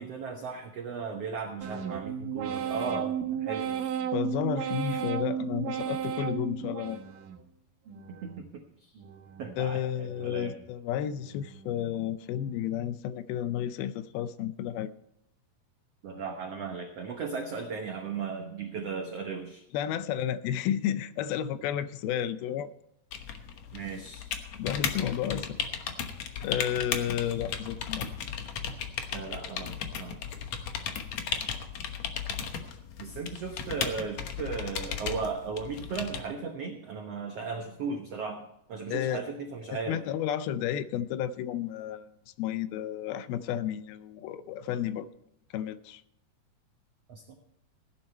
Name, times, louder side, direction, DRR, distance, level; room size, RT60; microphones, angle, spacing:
voice 1, 0.0-3.6 8.2-8.9 9.4-10.6 16.0-19.6 23.7-24.3 29.1-30.2 33.0-40.0 47.1-47.4, right 5 dB, 85° right, 4 dB, 1.3 m, -36 dB
sound 1, 1.6-7.4 7.9-8.5 8.9-9.6 10.0-10.7 11.1-11.7 12.2-12.8, right 8 dB, 65° right, 2.9 m, -35 dB
voice 2, 4.1-7.0 9.6-14.9 19.7-22.7 24.6-25.6 26.4-28.1 38.9-39.2 39.9-42.1 42.4-45.1 45.5-46.0, left 10 dB, 80° left, 14 dB, 2.4 m, -32 dB
sound 2, 23.1-36.2, left 7 dB, 65° left, 1.8 m, -36 dB
16.5 x 10.5 x 4.4 m, 0.78 s
omnidirectional pair, 4.5 m